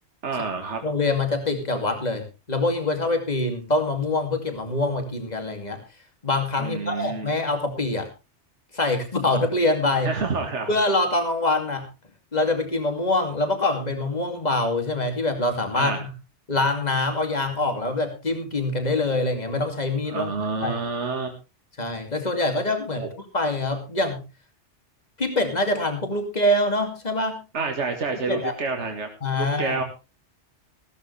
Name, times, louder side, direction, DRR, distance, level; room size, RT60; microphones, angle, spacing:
voice 1, 0.2-0.8 6.6-7.3 10.0-10.7 15.7-16.0 20.1-21.3 22.9-23.1 27.5-29.1 29.3-29.8, right 4 dB, 75° right, 4 dB, 2.0 m, -28 dB
voice 2, 0.8-5.8 6.2-8.1 8.7-10.1 10.7-11.9 12.3-16.1 16.5-20.3 20.6-20.8 21.8-23.0 23.3-24.2 25.2-27.4 28.3-28.5 29.2-29.8, left 2 dB, 35° left, 6 dB, 2.7 m, -24 dB
15.5 x 13.5 x 3.3 m, 0.29 s
omnidirectional pair, 1.2 m